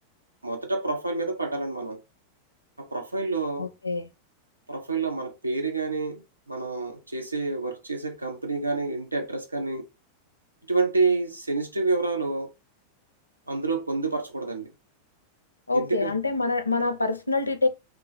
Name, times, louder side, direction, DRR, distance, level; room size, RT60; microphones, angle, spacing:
voice 1, 0.4-2.0 2.8-3.7 4.7-9.8 10.7-12.5 13.5-14.7 15.7-16.2, right 3 dB, 80° right, 0.7 m, -28 dB
voice 2, 3.6-4.1 15.7-17.7, left 3 dB, 80° left, 0.5 m, -26 dB
3.1 x 2.3 x 3.9 m
figure-of-eight pair, 90°, 0 cm